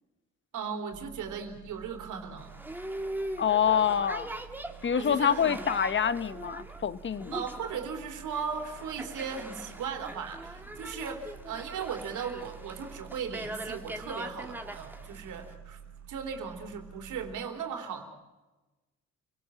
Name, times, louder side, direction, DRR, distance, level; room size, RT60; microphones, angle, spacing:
voice 1, 0.5-2.5 4.9-5.6 7.3-15.8 16.1-18.0, right 6 dB, 80° right, 4 dB, 3.4 m, -37 dB
sound 1, 0.9-17.4, right 9 dB, 65° right, 2.8 m, -50 dB
Boat Water vehicle, 2.4-15.5, right 1 dB, 5° right, 2.0 m, -41 dB
voice 2, 3.4-4.3 4.8-7.4, left 8 dB, 40° left, 14 dB, 1.1 m, -26 dB
28.5 x 18.5 x 7.5 m, 1.2 s
cardioid pair, 90°, 30 cm